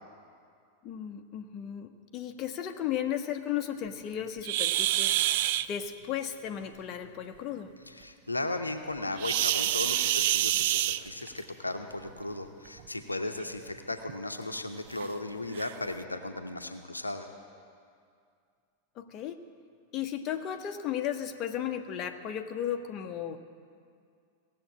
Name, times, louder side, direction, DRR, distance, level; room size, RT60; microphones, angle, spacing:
voice 1, 0.8-7.7 19.0-19.4 19.9-23.4, left 9 dB, 35° left, 5 dB, 0.9 m, -35 dB
sound 1, 4.4-5.7 9.2-11.4 12.7-12.8 13.4-13.5 14.1-14.2 15.0-15.1 15.5-15.7, right 14 dB, 50° right, 0.3 m, -27 dB
voice 2, 8.0-17.3, left 2 dB, 85° left, 6 dB, 0.8 m, -36 dB
17.0 x 7.6 x 8.6 m, 2.3 s
figure-of-eight pair, 90°, 0 cm